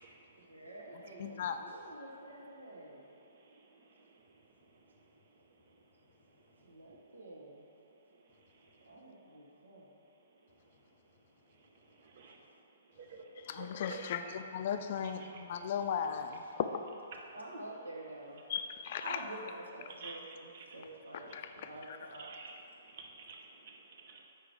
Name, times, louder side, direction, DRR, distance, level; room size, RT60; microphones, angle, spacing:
voice 1, 0.5-3.0 6.7-7.6 8.9-9.9 17.3-18.4 19.0-22.3, right 1 dB, 80° right, -2 dB, 1.0 m, -48 dB
voice 2, 1.2-1.6 13.5-16.4 18.5-19.2 21.3-21.5 21.9-22.0, left 7 dB, 50° left, 7 dB, 0.3 m, -37 dB
voice 3, 13.6-14.3 15.2-15.4 20.0-20.1 20.5-20.7 22.2-22.5 22.9-24.2, right 4 dB, 50° right, 1 dB, 0.8 m, -49 dB
4.9 x 4.6 x 4.6 m, 2.7 s
figure-of-eight pair, 120°, 0 cm